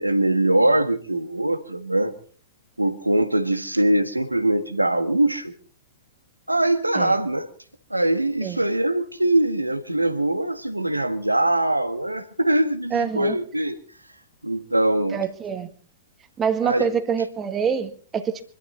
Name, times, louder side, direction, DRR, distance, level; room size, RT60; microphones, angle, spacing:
voice 1, 0.0-2.1 2.8-5.5 6.5-7.5 7.9-13.8 14.4-15.2 16.6-16.9, right 1 dB, 90° right, 10 dB, 1.5 m, -22 dB
voice 2, 12.9-13.4 15.1-15.7 16.4-18.5, right 7 dB, 20° right, 8 dB, 1.8 m, -25 dB
25.5 x 12.5 x 4.0 m, 0.42 s
figure-of-eight pair, 105°, 0 cm